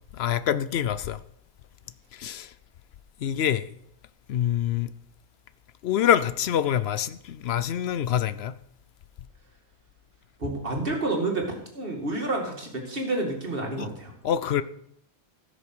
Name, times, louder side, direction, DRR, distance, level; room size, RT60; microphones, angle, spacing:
voice 1, 0.2-1.2 2.1-2.5 3.2-3.7 4.3-4.9 5.8-8.5 13.8-13.9 14.2-14.6, left 10 dB, 75° left, 0.8 m, -25 dB
voice 2, 10.4-14.1, right 2 dB, 60° right, 2.7 m, -29 dB
16.0 x 6.5 x 6.1 m
omnidirectional pair, 1.1 m